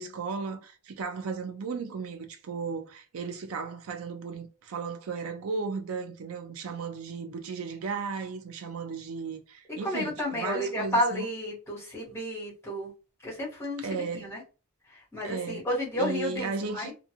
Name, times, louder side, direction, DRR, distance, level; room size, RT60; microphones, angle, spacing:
voice 1, 0.0-11.3 13.8-14.3 15.2-15.6 16.0-16.9, right 5 dB, 70° right, 0.4 m, -35 dB
voice 2, 9.8-12.9 13.2-14.4 14.9-16.9, equal, 10° left, 1.2 m, -31 dB
2.4 x 2.4 x 2.7 m
head